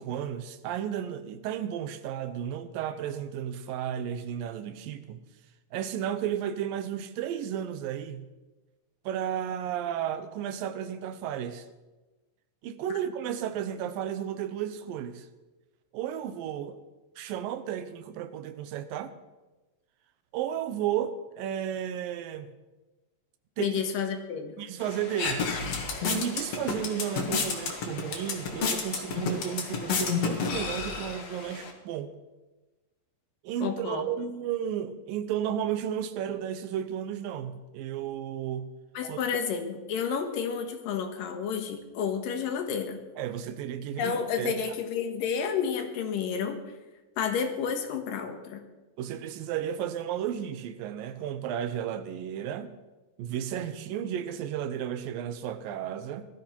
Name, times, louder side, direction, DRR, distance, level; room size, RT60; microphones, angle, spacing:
voice 1, 0.0-5.2 5.7-8.3 9.1-11.7 12.6-15.3 15.9-16.8 17.2-19.1 20.3-22.5 23.6-23.8 24.6-25.5 26.1-32.1 33.4-38.7 39.1-39.2 43.2-44.5 49.0-52.7 53.2-56.3, right 9 dB, 85° right, 2.6 m, -33 dB
voice 2, 23.6-24.5 33.6-34.1 38.9-43.0 44.0-46.7 47.2-48.6, left 7 dB, 80° left, 3.1 m, -30 dB
sound 1, 24.8-31.7, left 5 dB, 50° left, 2.5 m, -31 dB
19.0 x 13.0 x 4.5 m
omnidirectional pair, 3.9 m